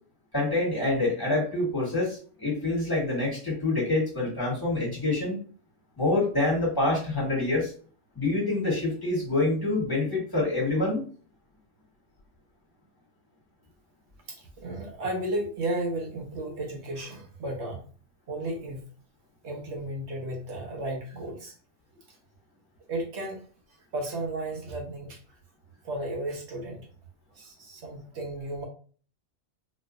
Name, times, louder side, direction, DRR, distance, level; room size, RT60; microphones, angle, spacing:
voice 1, 0.3-5.4 6.0-7.7 8.1-11.0, left 2 dB, 15° left, -5 dB, 1.5 m, -26 dB
voice 2, 14.3-17.8 18.3-18.8 19.4-21.5 22.9-23.4 23.9-25.2 25.8-26.8 27.3-28.7, right 1 dB, 60° right, 1 dB, 1.1 m, -33 dB
4.1 x 2.5 x 2.5 m, 0.41 s
omnidirectional pair, 1.4 m